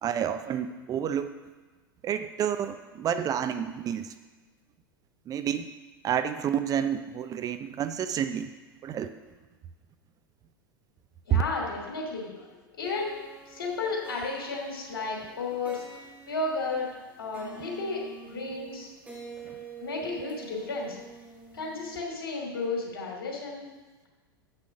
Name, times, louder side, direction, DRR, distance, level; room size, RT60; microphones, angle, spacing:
voice 1, 0.0-1.3 2.0-4.1 5.3-5.7 6.0-8.5 8.8-9.1 11.3-11.4, right 9 dB, 30° right, 10 dB, 0.6 m, -29 dB
voice 2, 11.3-13.2 13.5-15.8 16.3-16.9 17.2-18.9 19.8-21.0 21.5-23.7, left 3 dB, 75° left, 0 dB, 2.7 m, -33 dB
sound 1, 12.8-17.1 17.3-22.0, right 5 dB, 10° right, 2.0 m, -47 dB
7.4 x 6.4 x 6.5 m, 1.3 s
hypercardioid pair, 95°, 12 cm